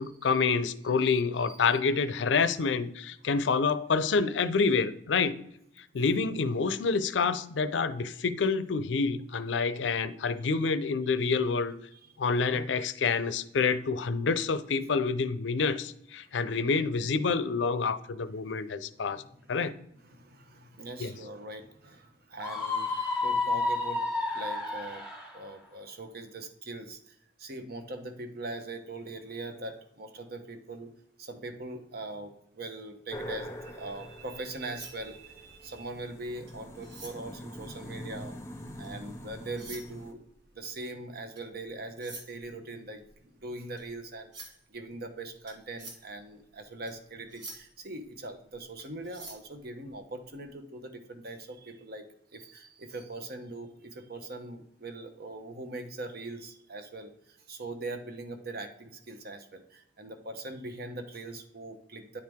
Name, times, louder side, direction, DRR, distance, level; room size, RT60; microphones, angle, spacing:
voice 1, 0.0-5.3 5.9-11.7 12.2-19.2 19.5-19.7 21.0-21.1, left 4 dB, 85° left, 0.5 m, -27 dB
voice 2, 20.0-25.0 25.3-30.9 31.2-38.3 38.8-40.2 40.5-52.0 52.3-62.2, right 2 dB, 60° right, 1.0 m, -41 dB
Screaming, 22.4-25.3, left 3 dB, 5° right, 1.5 m, -30 dB
sound 1, 33.1-40.1, equal, 15° left, 0.7 m, -44 dB
sound 2, 34.6-39.1 39.5-50.4, right 2 dB, 85° right, 2.1 m, -50 dB
9.6 x 4.6 x 3.6 m
head